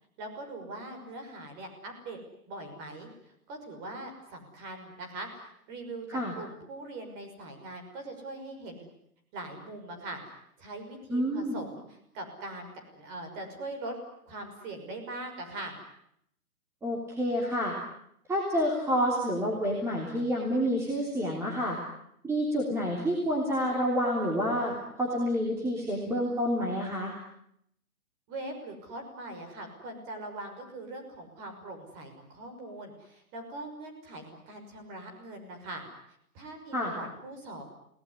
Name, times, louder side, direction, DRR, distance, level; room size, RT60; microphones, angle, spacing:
voice 1, 0.2-2.2 2.5-8.9 9.3-14.0 14.2-15.8 28.3-35.8 36.3-37.6, right 2 dB, 25° right, 4 dB, 6.1 m, -42 dB
voice 2, 11.1-11.6 16.8-17.7 18.3-21.8 22.2-27.1 36.7-36.9, equal, 5° right, -2 dB, 3.4 m, -28 dB
29.5 x 19.0 x 9.9 m, 0.74 s
hypercardioid pair, 155°, 44 cm